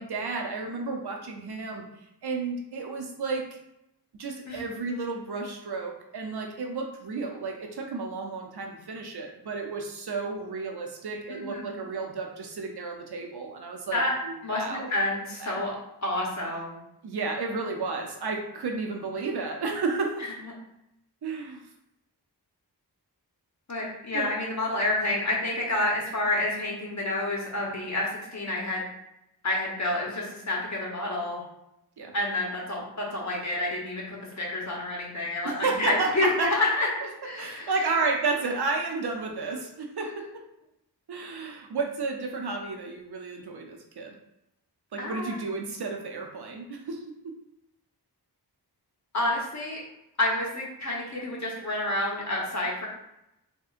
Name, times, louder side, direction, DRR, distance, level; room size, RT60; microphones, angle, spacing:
voice 1, 0.0-1.9 2.2-3.6 4.2-14.9 15.4-15.5 17.0-20.3 21.2-21.6 24.1-24.3 32.0-32.1 35.4-36.7 37.4-40.3 41.1-44.1 44.9-47.3, right 3 dB, 70° right, 2 dB, 0.6 m, -32 dB
voice 2, 11.3-11.8 13.9-14.1 14.4-15.7 16.0-16.8 23.7-28.8 29.4-31.4 32.1-36.9 37.2-37.7 45.0-45.3 49.1-49.8 50.2-52.9, left 2 dB, 45° left, -3 dB, 0.9 m, -29 dB
3.5 x 2.6 x 2.4 m, 0.83 s
wide cardioid pair, 85°, 40 cm